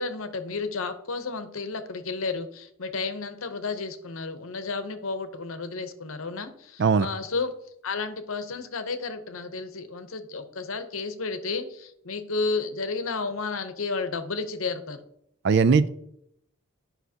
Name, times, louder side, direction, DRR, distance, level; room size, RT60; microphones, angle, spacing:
voice 1, 0.0-7.5 7.8-15.0, left 4 dB, 75° left, 9 dB, 0.9 m, -32 dB
voice 2, 15.4-15.9, right 5 dB, 55° right, 15 dB, 0.4 m, -19 dB
11.5 x 5.6 x 2.8 m, 0.76 s
head